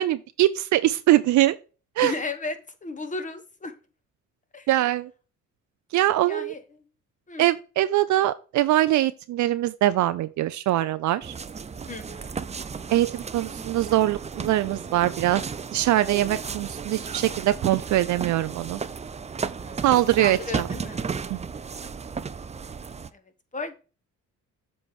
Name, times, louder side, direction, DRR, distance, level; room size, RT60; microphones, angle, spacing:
voice 1, 0.0-1.6 2.0-2.1 4.7-5.1 5.9-6.5 7.4-11.3 12.9-15.4 15.7-18.8 19.8-20.7 21.3-21.4, right 14 dB, 70° right, 0.5 m, -22 dB
voice 2, 2.0-3.7 4.5-4.7 6.3-6.6 7.3-7.5 11.9-12.5 19.6-19.9 20.2-21.1 23.1-23.2 23.5-23.8, left 3 dB, 25° left, 1.2 m, -34 dB
sound 1, 11.2-23.1, right 5 dB, 20° right, 0.5 m, -34 dB
7.6 x 3.4 x 5.9 m
cardioid pair, 90°, 30 cm